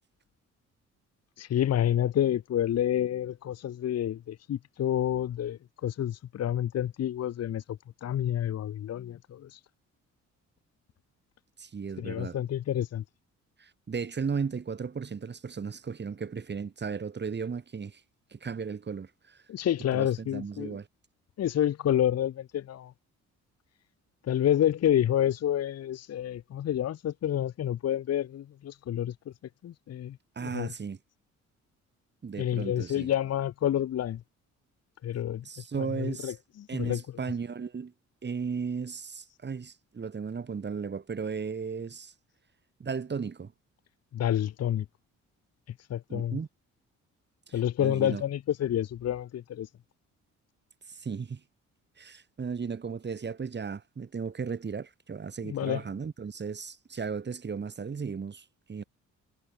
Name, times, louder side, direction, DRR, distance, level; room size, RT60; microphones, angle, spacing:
voice 1, 1.4-9.6 12.0-13.0 19.5-20.8 21.4-22.9 24.2-29.1 29.6-30.7 32.4-34.2 35.0-35.4 35.8-37.0 44.1-44.8 45.9-46.4 47.5-49.7 55.4-55.8, left 11 dB, 55° left, 1.0 m, -29 dB
voice 2, 11.6-12.4 13.6-18.0 18.3-19.4 19.9-20.9 30.4-31.0 32.2-33.1 35.4-36.3 36.7-37.9 38.2-42.1 42.8-43.5 46.1-46.5 47.5-48.2 50.9-51.4 52.0-58.8, right 5 dB, 35° right, 2.8 m, -35 dB
cardioid pair, 90°, 30 cm